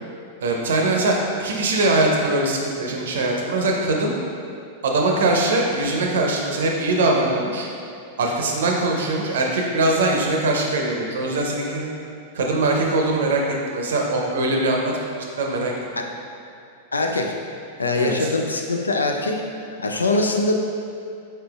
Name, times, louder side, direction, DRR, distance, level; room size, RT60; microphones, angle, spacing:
voice 1, 0.4-4.1 4.8-7.7 8.2-11.9 12.3-14.9 15.4-15.7 17.9-18.3, right 2 dB, 65° right, 0 dB, 0.6 m, -22 dB
voice 2, 16.9-17.4 17.8-19.4 19.8-20.5, left 2 dB, 80° left, 3 dB, 0.4 m, -22 dB
5.0 x 4.4 x 2.3 m, 2.6 s
figure-of-eight pair, 95°, 0 cm